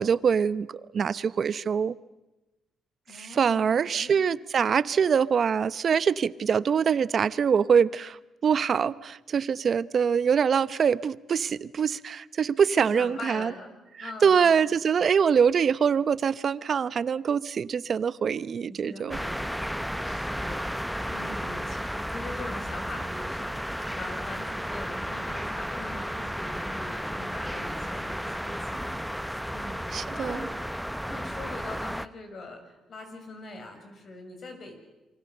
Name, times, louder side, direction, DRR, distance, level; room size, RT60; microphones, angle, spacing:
voice 1, 0.0-1.9 3.1-13.5 14.0-19.2 29.9-30.5, right 7 dB, 50° right, 17 dB, 0.8 m, -24 dB
voice 2, 3.1-4.1 4.6-4.8 12.9-14.6 18.7-19.4 20.0-21.8 22.1-30.6 31.0-34.7, left 2 dB, 50° left, 5 dB, 6.7 m, -42 dB
sound 1, 19.1-32.1, equal, ahead, 0.8 m, -33 dB
28.5 x 24.0 x 6.8 m, 1.0 s
cardioid pair, 90°, 0 cm